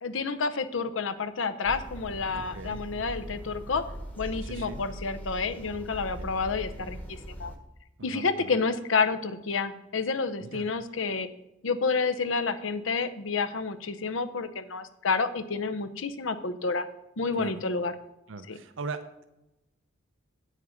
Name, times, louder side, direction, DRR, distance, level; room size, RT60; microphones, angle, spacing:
voice 1, 0.0-3.8 4.2-7.5 8.0-11.3 11.6-16.9 17.2-18.0 18.5-18.6, left 4 dB, 80° left, 10 dB, 0.7 m, -29 dB
sound 1, 1.6-7.6, equal, 10° left, 1.0 m, -41 dB
voice 2, 2.3-2.8 4.4-4.8 6.2-6.3 8.1-8.6 10.4-10.7 17.4-17.6 18.3-19.2, right 4 dB, 80° right, 9 dB, 0.6 m, -40 dB
8.9 x 6.4 x 5.1 m, 0.91 s
head